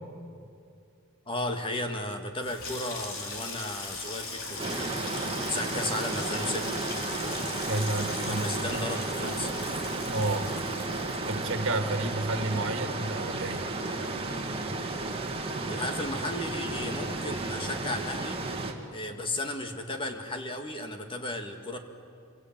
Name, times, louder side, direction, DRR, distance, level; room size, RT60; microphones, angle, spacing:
voice 1, 1.3-4.9 5.4-6.8 8.3-9.5 15.7-18.4 18.9-21.8, left 1 dB, 25° left, 5 dB, 1.9 m, -34 dB
Water tap faucet / Sink (filling or washing), 2.3-15.1 15.4-16.1 16.3-16.7, left 3 dB, 70° left, 4.0 m, -40 dB
sound 1, 4.6-18.7, right 2 dB, 25° right, 2.1 m, -33 dB
voice 2, 7.6-8.4 8.7-8.8 10.1-10.5 11.3-13.7 18.7-18.9, right 2 dB, 60° right, 6 dB, 2.2 m, -31 dB
27.0 x 23.0 x 9.0 m, 2.5 s
head